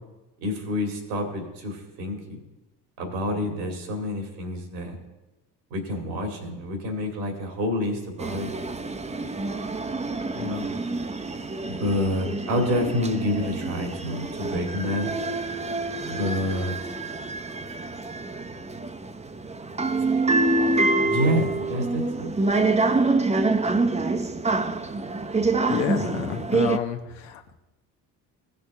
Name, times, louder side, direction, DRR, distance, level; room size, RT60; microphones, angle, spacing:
voice 1, 0.4-2.4 3.0-5.0 5.7-8.5 10.3-10.6 11.7-15.1 16.1-16.9 21.0-22.3, left 1 dB, 85° right, 2 dB, 2.5 m, -28 dB
sound 1, 8.2-26.8, right 3 dB, 15° right, 0.7 m, -26 dB
voice 2, 25.7-27.5, left 9 dB, 80° left, 5 dB, 1.2 m, -29 dB
16.5 x 6.7 x 3.5 m, 1.0 s
hypercardioid pair, 60°, 49 cm